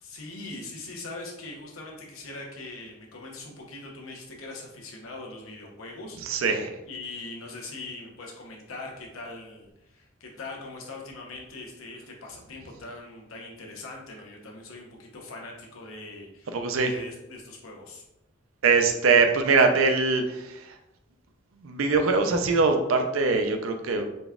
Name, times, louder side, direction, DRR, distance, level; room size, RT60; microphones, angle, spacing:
voice 1, 0.0-6.4 6.9-16.6 16.8-18.0, left 2 dB, 85° left, 0 dB, 0.9 m, -41 dB
voice 2, 6.2-6.8 16.5-16.9 18.6-20.8 21.6-24.1, right 4 dB, 75° right, 6 dB, 0.5 m, -23 dB
4.0 x 2.3 x 3.4 m, 0.92 s
head